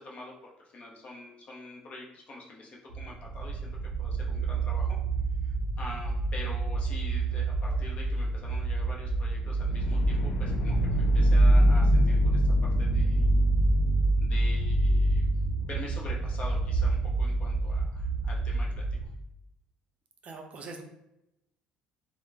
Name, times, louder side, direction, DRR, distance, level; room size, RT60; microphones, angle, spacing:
voice 1, 0.0-5.0 5.4-13.3 14.2-15.3 15.6-19.1, left 2 dB, 45° left, -2 dB, 0.8 m, -45 dB
sound 1, 2.9-19.1, right 4 dB, 75° right, 0.8 m, -31 dB
sound 2, 9.3-19.2, equal, 75° left, 0.4 m, -25 dB
voice 2, 20.2-20.8, right 3 dB, 45° right, 2 dB, 0.5 m, -42 dB
2.2 x 2.1 x 3.3 m, 0.87 s
supercardioid pair, 85°, 3 cm